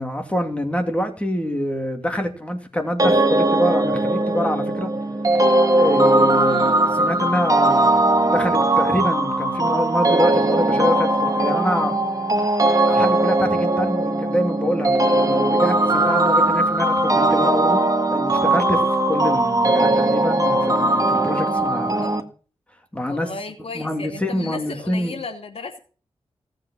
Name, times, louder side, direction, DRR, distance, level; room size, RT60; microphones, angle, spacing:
voice 1, 0.0-4.9 5.7-11.9 12.8-22.2 22.9-23.3 23.7-25.1, equal, 10° left, 2.6 m, -25 dB
sound 1, 3.0-22.2, right 2 dB, 35° right, 1.7 m, -19 dB
voice 2, 6.5-6.8 22.0-22.1 22.9-25.8, left 4 dB, 65° left, 2.9 m, -35 dB
17.5 x 7.7 x 7.2 m
wide cardioid pair, 115°, 11 cm